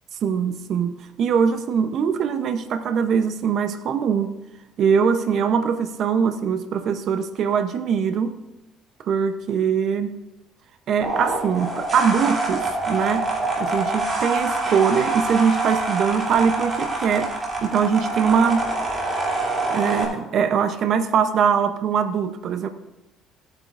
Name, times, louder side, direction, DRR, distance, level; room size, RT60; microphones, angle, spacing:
voice 1, 0.2-4.3 4.8-8.4 9.0-10.2 10.9-13.2 13.6-17.3 17.6-18.7 19.7-22.7, right 7 dB, 55° right, 8 dB, 0.6 m, -22 dB
sound 1, 11.0-20.0, right 2 dB, 25° right, 2.7 m, -25 dB
16.0 x 8.8 x 2.5 m, 1.0 s
cardioid pair, 140°, 0 cm